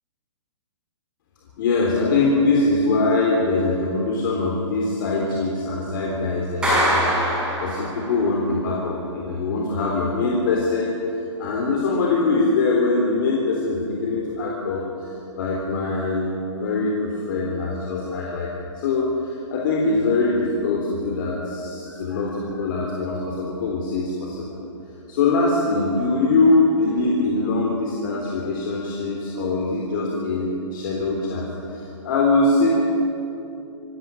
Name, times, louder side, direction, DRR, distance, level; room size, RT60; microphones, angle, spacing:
voice 1, 1.6-7.1 7.6-24.6 25.1-32.7, left 3 dB, 45° left, -2 dB, 3.7 m, -23 dB
Clapping, 6.6-8.3, right 1 dB, 5° right, 6.4 m, -22 dB
26.5 x 13.0 x 9.1 m, 2.8 s
hypercardioid pair, 165°, 16 cm